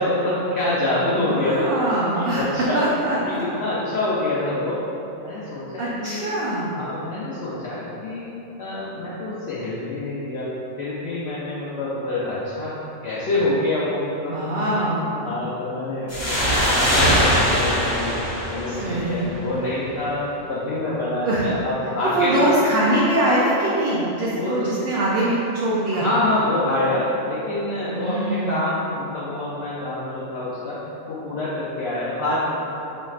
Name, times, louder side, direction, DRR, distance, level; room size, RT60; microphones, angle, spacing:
voice 1, 0.0-1.9 2.1-2.8 3.3-4.8 5.2-6.4 6.7-8.3 8.6-10.5 10.8-12.7 13.0-14.6 15.0-18.2 18.5-22.3 24.4-24.7 25.9-32.6, left 1 dB, 65° left, -9 dB, 0.7 m, -26 dB
voice 2, 1.2-2.4 2.7-3.4 5.8-6.7 14.3-15.2 18.7-19.3 21.2-21.5 22.0-26.1 27.9-28.7, right 1 dB, 65° right, -6 dB, 0.6 m, -23 dB
sound 1, 16.1-19.5, equal, 15° left, 0.9 m, -21 dB
4.1 x 3.1 x 2.3 m, 3.0 s
omnidirectional pair, 1.3 m